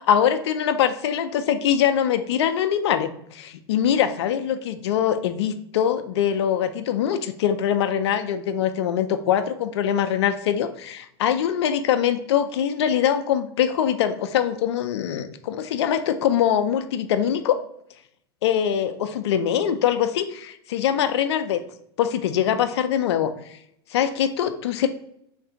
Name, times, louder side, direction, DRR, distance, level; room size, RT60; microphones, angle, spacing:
voice 1, 0.1-17.6 18.4-21.6 22.0-23.6 23.9-24.9, left 9 dB, 75° left, 10 dB, 0.5 m, -23 dB
3.3 x 2.6 x 3.8 m, 0.74 s
hypercardioid pair, 105°, 14 cm